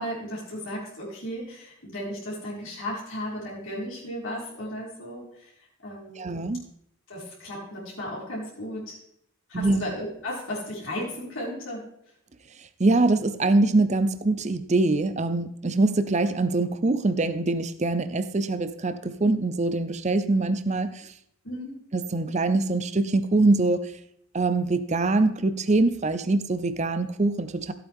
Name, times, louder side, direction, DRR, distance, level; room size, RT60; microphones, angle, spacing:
voice 1, 0.0-5.5 5.8-6.4 7.1-9.0 9.5-11.9 21.4-21.8, equal, 75° left, -6 dB, 4.1 m, -35 dB
voice 2, 6.2-6.6 9.5-9.8 12.8-21.1 21.9-23.9 24.3-27.7, right 2 dB, 35° right, 12 dB, 0.6 m, -23 dB
14.5 x 8.5 x 3.6 m, 0.73 s
head